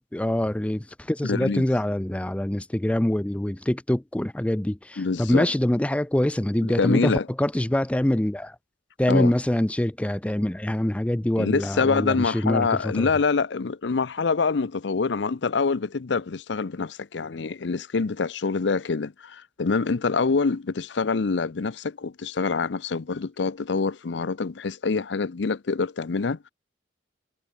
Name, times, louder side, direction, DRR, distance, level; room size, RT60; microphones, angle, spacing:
voice 1, 0.0-7.1 7.4-8.6 9.0-13.1, left 1 dB, 5° left, 0.4 m, -24 dB
voice 2, 1.2-1.6 5.0-5.5 6.6-7.3 9.1-9.3 11.4-26.5, left 4 dB, 80° left, 0.6 m, -25 dB
head